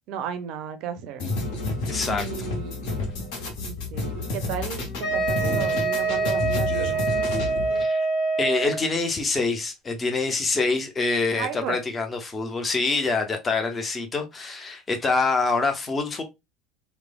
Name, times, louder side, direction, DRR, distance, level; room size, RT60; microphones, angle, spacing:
voice 1, 0.1-1.3 2.0-2.9 3.6-7.1 11.4-11.8, right 8 dB, 60° right, 0.4 m, -34 dB
sound 1, 1.2-7.8, left 2 dB, 60° left, 0.7 m, -30 dB
voice 2, 1.9-2.5 7.8-8.1 8.4-16.2, left 3 dB, 25° left, 0.6 m, -25 dB
Wind instrument woodwind instrument, 5.0-8.9, right 3 dB, 45° left, 1.3 m, -25 dB
3.0 x 2.0 x 2.2 m
hypercardioid pair, 70°, 0 cm